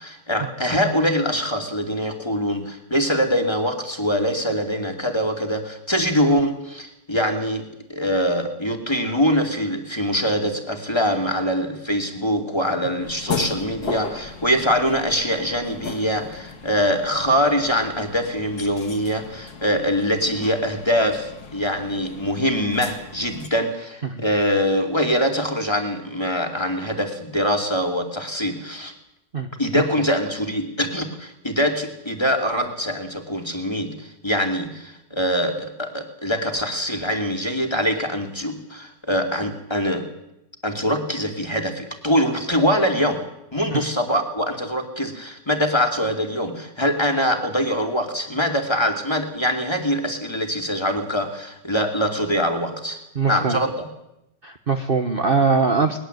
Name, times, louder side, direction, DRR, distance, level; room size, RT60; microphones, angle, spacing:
voice 1, 0.0-28.9 29.6-40.1 40.6-43.2 43.5-53.0 53.3-53.9, equal, 15° left, 4 dB, 2.6 m, -23 dB
sound 1, 13.0-23.5, left 5 dB, 60° left, 2.3 m, -36 dB
voice 2, 53.1-53.6 54.4-56.0, right 4 dB, 35° right, 6 dB, 1.2 m, -21 dB
20.5 x 20.0 x 8.0 m, 0.84 s
omnidirectional pair, 1.9 m